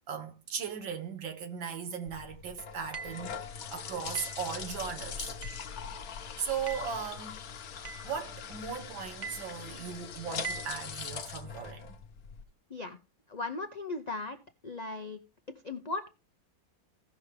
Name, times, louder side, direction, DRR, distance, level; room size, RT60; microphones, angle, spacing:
voice 1, 0.1-3.4 3.7-5.4 6.1-7.4 8.0-12.0, right 7 dB, 80° right, 2.0 m, -38 dB
sound 1, 2.1-12.4, left 7 dB, 55° left, 1.2 m, -42 dB
sound 2, 2.9-3.3 4.1-4.5 5.4-5.7 6.7-7.0 7.8-8.1 9.2-9.5 10.4-10.8, right 6 dB, 35° right, 0.7 m, -41 dB
voice 2, 13.3-14.4 14.6-15.2 15.5-16.1, left 3 dB, 80° left, 0.3 m, -37 dB
16.5 x 6.0 x 3.3 m
omnidirectional pair, 2.1 m